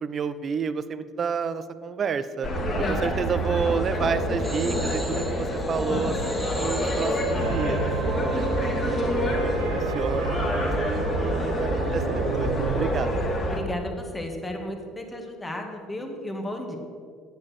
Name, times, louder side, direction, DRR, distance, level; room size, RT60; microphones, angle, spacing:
voice 1, 0.0-2.5 2.9-13.1, right 6 dB, 35° right, 13 dB, 0.6 m, -30 dB
sound 1, 2.4-13.6, equal, 40° left, 2.0 m, -27 dB
voice 2, 2.8-3.3 13.5-16.8, left 1 dB, 15° left, 3 dB, 1.7 m, -34 dB
sound 2, 4.4-13.4, right 1 dB, 5° right, 1.5 m, -32 dB
sound 3, 7.4-12.9, right 7 dB, 70° right, 0.8 m, -34 dB
9.6 x 8.2 x 6.3 m, 2.1 s
figure-of-eight pair, 60°, 0 cm